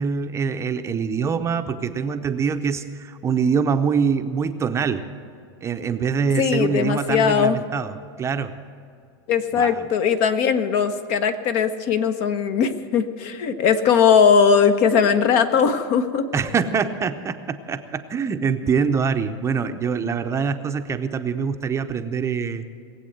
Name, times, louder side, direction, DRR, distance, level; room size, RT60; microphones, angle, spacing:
voice 1, 0.0-5.1 5.6-8.6 9.5-9.9 16.3-22.7, right 6 dB, 20° right, 8 dB, 0.7 m, -24 dB
voice 2, 6.4-7.6 9.3-16.2, left 6 dB, 50° left, 10 dB, 1.1 m, -19 dB
20.0 x 8.1 x 7.8 m, 2.4 s
supercardioid pair, 125°, 14 cm